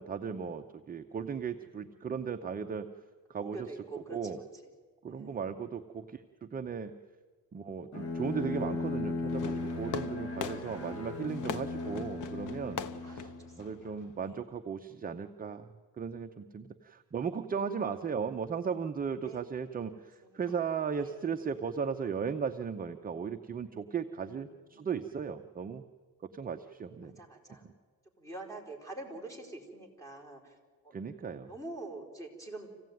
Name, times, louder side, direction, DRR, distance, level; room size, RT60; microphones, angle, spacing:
voice 1, 0.0-2.9 3.3-3.7 3.9-4.4 5.0-6.9 7.5-13.3 13.6-15.7 16.0-25.8 26.2-27.2 27.6-27.7 30.9-31.5, right 6 dB, 25° right, 6 dB, 0.7 m, -36 dB
voice 2, 3.4-4.4 5.1-5.4 13.0-13.7 14.3-14.4 19.2-19.4 20.2-20.4 21.0-21.2 24.2-24.9 27.0-27.6 28.2-30.5 30.8-30.9 31.5-32.7, right 2 dB, 10° left, 0 dB, 4.4 m, -46 dB
Bowed string instrument, 7.9-13.7, left 3 dB, 40° left, 2.6 m, -37 dB
Fireworks, 9.3-14.3, left 7 dB, 60° left, 1.1 m, -42 dB
26.0 x 16.0 x 9.3 m, 1.5 s
cardioid pair, 145°, 35 cm